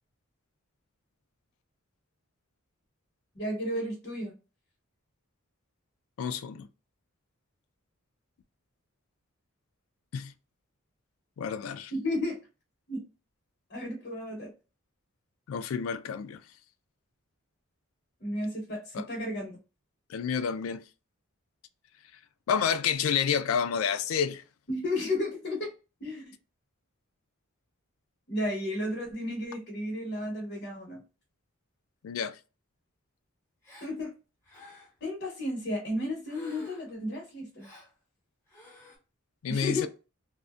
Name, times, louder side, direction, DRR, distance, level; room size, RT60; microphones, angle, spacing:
voice 1, 3.3-4.3 11.9-12.4 12.9-13.0 13.7-14.5 18.2-19.6 24.7-25.7 26.0-26.3 28.3-31.0 33.8-34.1 35.0-37.7 39.5-39.9, left 1 dB, 50° left, 0.9 m, -33 dB
voice 2, 6.2-6.7 10.1-10.3 11.4-11.9 15.5-16.4 18.9-19.1 20.1-20.8 22.5-24.4 32.0-32.4 39.4-39.9, left 7 dB, 70° left, 0.3 m, -29 dB
Gasp, 33.6-34.0 34.4-35.0 36.3-37.0 37.6-37.9 38.5-39.0, left 2 dB, 10° left, 1.1 m, -52 dB
2.6 x 2.1 x 2.3 m
head